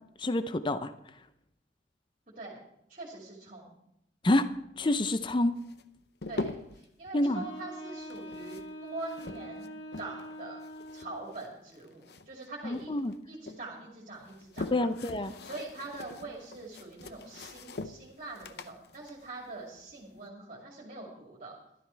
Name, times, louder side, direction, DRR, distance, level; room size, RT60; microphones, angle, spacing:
voice 1, 0.2-0.9 4.2-4.5 4.8-5.6 7.1-7.4 12.6-13.1 14.7-15.3, left 1 dB, 25° left, 11 dB, 0.6 m, -27 dB
voice 2, 2.9-3.7 6.3-9.7 10.0-10.6 10.9-12.9 13.3-14.9 15.4-21.6, right 2 dB, 45° right, -3 dB, 2.4 m, -43 dB
sound 1, 5.6-6.9 8.0-10.3 10.6-12.5 12.7-13.6 14.1-20.2, left 2 dB, 60° left, 0.7 m, -43 dB
Wind instrument woodwind instrument, 7.3-11.4, right 1 dB, 90° left, 1.5 m, -44 dB
13.5 x 12.0 x 4.5 m, 0.80 s
head